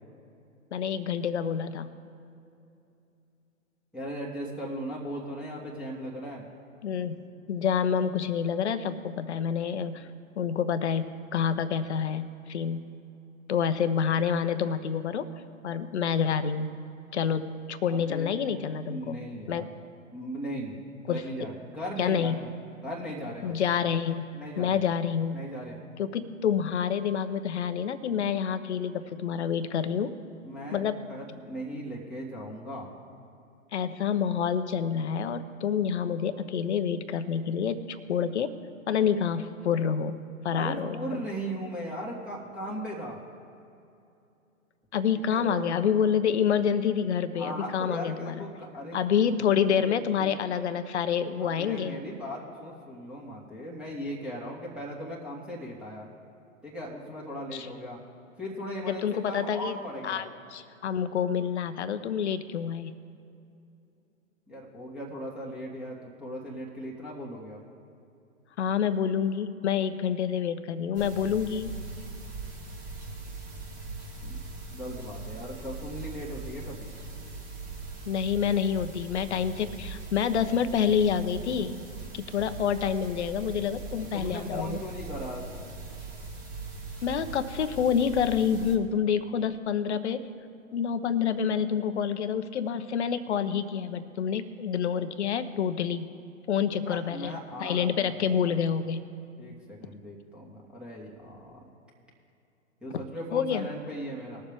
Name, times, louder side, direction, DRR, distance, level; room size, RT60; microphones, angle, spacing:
voice 1, 0.7-1.9 6.8-7.2 7.5-10.1 10.4-12.9 13.5-15.3 15.6-16.7 17.1-19.2 19.5-19.7 21.1-21.2 22.0-22.4 23.4-24.3 24.6-25.4 26.0-30.1 30.7-31.0 33.7-38.6 38.9-41.1 44.9-48.4 48.9-52.0 57.5-57.7 58.9-59.7 60.0-63.0 68.6-71.7 78.1-81.8 82.1-84.8 87.0-90.3 90.7-96.1 96.5-99.0 103.3-103.7, left 7 dB, 55° left, 11 dB, 1.0 m, -28 dB
voice 2, 3.9-6.5 17.9-18.6 18.8-19.7 20.1-20.8 21.0-22.5 22.8-23.6 24.3-24.8 25.3-25.8 30.4-32.9 40.5-43.2 45.3-45.7 47.3-49.0 49.7-50.4 51.4-56.1 56.6-58.0 58.4-60.3 64.5-67.6 74.2-74.4 74.7-76.9 84.1-85.5 96.7-98.6 99.4-101.6 102.8-104.4, equal, ahead, -4 dB, 1.9 m, -38 dB
sound 1, 70.9-88.8, right 3 dB, 20° right, 1.7 m, -41 dB
20.5 x 7.1 x 3.6 m, 2.7 s
figure-of-eight pair, 125°, 41 cm